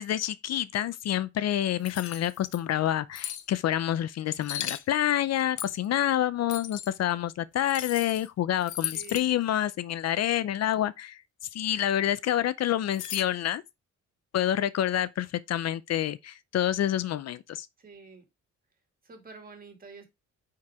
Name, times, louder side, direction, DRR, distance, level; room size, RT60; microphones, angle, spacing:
voice 1, 0.0-11.2 11.5-13.6 14.3-17.7, left 11 dB, 60° left, 0.5 m, -28 dB
sound 1, 1.8-2.6 3.1-3.5 4.4-4.8 5.6-5.9 6.5-6.9 7.7-8.3 8.6-9.3 12.9-13.2, left 11 dB, 80° left, 0.9 m, -36 dB
voice 2, 8.9-9.3 17.8-18.2 19.0-20.1, right 4 dB, 30° right, 2.5 m, -48 dB
9.2 x 4.8 x 3.5 m
cardioid pair, 145°, 30 cm